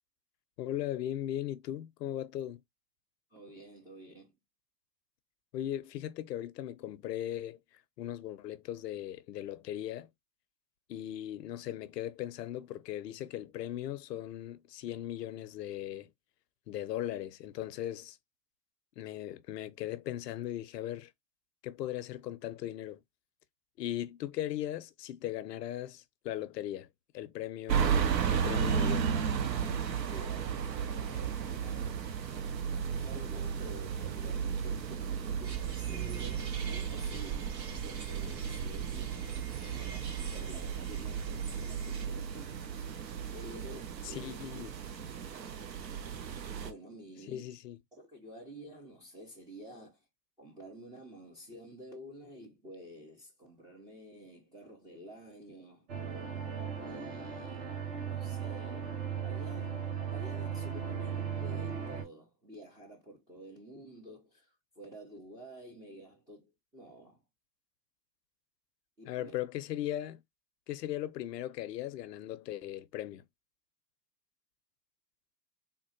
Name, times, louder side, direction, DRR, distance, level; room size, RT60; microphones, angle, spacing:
voice 1, 0.6-2.6 5.5-7.6 8.0-10.1 10.9-16.1 16.7-18.2 19.0-21.1 21.6-23.0 23.8-26.9 27.1-29.1 44.0-44.7 47.3-47.8 69.1-70.2 70.7-73.2, left 12 dB, 75° left, 0.6 m, -38 dB
voice 2, 3.3-4.3 30.0-32.1 32.9-42.6 43.3-44.4 46.6-47.6 47.9-50.0 50.4-55.9 56.8-59.8 60.1-67.2 69.0-69.4, equal, 10° right, 0.3 m, -50 dB
sound 1, 27.7-46.7, right 7 dB, 80° right, 0.8 m, -34 dB
sound 2, 35.4-42.1, right 7 dB, 35° right, 2.2 m, -44 dB
sound 3, 55.9-62.0, right 7 dB, 60° right, 1.5 m, -37 dB
3.6 x 2.1 x 2.7 m
hypercardioid pair, 100°, 50 cm